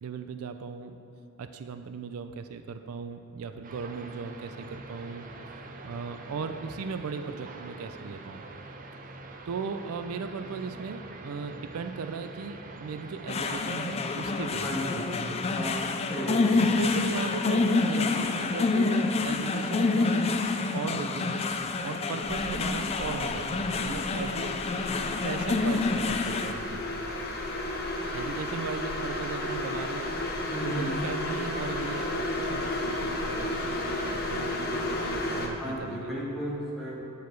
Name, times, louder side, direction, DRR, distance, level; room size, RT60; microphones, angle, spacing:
voice 1, 0.0-1.0 1.4-5.3 5.8-8.4 9.5-15.0 16.5-20.4 20.7-21.5 21.8-24.5 25.2-27.1 28.1-30.1 30.6-36.1, right 5 dB, 90° right, 9 dB, 0.4 m, -37 dB
sound 1, 3.6-13.6, right 2 dB, 40° right, 0.5 m, -44 dB
sound 2, 13.3-26.5, left 3 dB, 30° left, 0.3 m, -27 dB
voice 2, 14.6-15.0 15.5-15.8 16.1-16.7 30.5-30.9 35.6-37.0, equal, ahead, -8 dB, 1.8 m, -34 dB
sound 3, 22.2-35.5, left 1 dB, 45° left, 0.8 m, -33 dB
9.2 x 4.7 x 4.6 m, 2.7 s
head